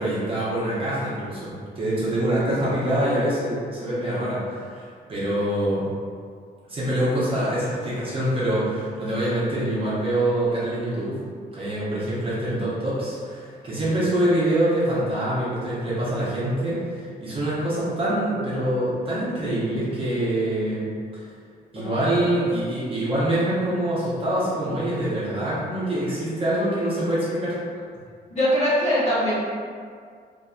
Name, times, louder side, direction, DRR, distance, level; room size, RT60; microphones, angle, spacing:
voice 1, 0.0-5.9 6.7-11.2 11.5-21.2 21.7-27.5, right 1 dB, 35° right, -9 dB, 0.9 m, -25 dB
voice 2, 28.3-29.3, equal, 40° left, -10 dB, 1.1 m, -21 dB
2.8 x 2.6 x 2.4 m, 2.1 s
cardioid pair, 125°, 16 cm